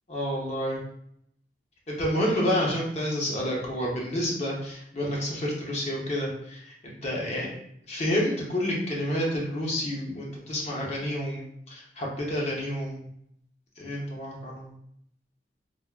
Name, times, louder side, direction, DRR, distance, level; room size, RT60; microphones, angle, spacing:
voice 1, 0.1-0.8 1.9-7.5 7.9-13.1 13.8-14.7, equal, 40° left, -3 dB, 0.7 m, -29 dB
3.3 x 2.1 x 2.3 m, 0.72 s
head